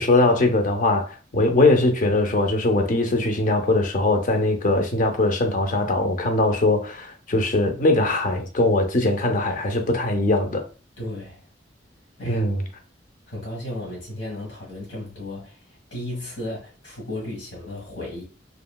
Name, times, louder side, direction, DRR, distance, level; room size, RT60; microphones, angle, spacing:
voice 1, 0.0-10.7 12.3-12.6, left 2 dB, 45° left, 0.5 m, -21 dB
voice 2, 11.0-11.4 12.2-12.5 13.3-15.6 15.9-18.2, left 1 dB, 90° left, 1.4 m, -34 dB
2.9 x 2.6 x 2.2 m
head